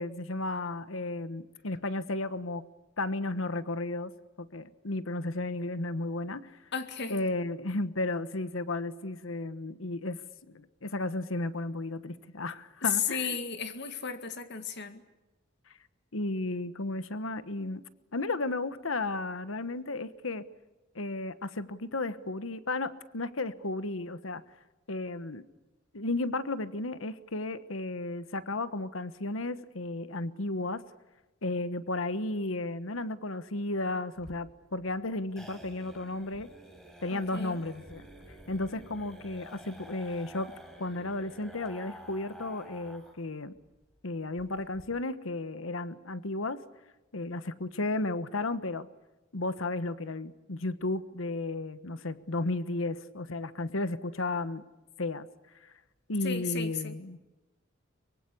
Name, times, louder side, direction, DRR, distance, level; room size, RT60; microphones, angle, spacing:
voice 1, 0.0-2.6 3.0-4.1 4.4-6.6 7.1-10.2 10.5-13.4 16.1-17.8 18.1-20.4 20.9-24.4 24.9-25.4 25.9-30.8 31.4-36.5 37.0-38.1 38.5-40.5 40.8-43.5 44.0-46.6 47.1-48.9 49.3-54.6 55.0-55.3 55.6-55.7 56.1-57.2, left 2 dB, 85° left, 13 dB, 1.3 m, -34 dB
voice 2, 6.7-7.2 12.8-15.0 37.1-37.6 38.7-38.9 56.2-57.0, left 7 dB, 60° left, 8 dB, 2.0 m, -34 dB
sound 1, 34.2-43.3 43.5-43.6 44.0-44.1 44.4-44.8, equal, 5° left, 6.2 m, -50 dB
24.0 x 23.5 x 8.5 m, 1.1 s
head